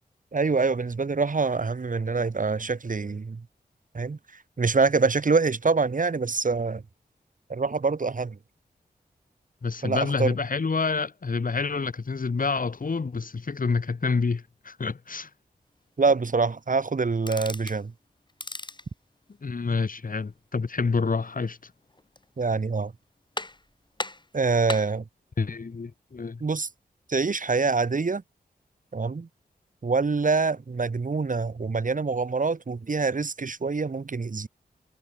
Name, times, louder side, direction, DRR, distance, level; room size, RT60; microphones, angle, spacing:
voice 1, 0.3-3.5 3.9-4.2 4.6-6.8 7.5-8.4 9.8-10.4 16.0-17.9 22.4-22.9 24.3-25.0 26.4-26.7 27.1-28.2 28.9-29.3 29.8-34.5, right 4 dB, 55° right, 2.6 m, -25 dB
voice 2, 9.6-15.3 19.4-21.6 25.4-26.4, left 4 dB, 55° left, 2.8 m, -28 dB
sound 1, 17.2-17.8 18.3-18.9 21.9-22.4 22.8-22.9 23.4-23.7 24.0-25.0, left 2 dB, 30° left, 5.4 m, -36 dB
wide cardioid pair, 65°, 17 cm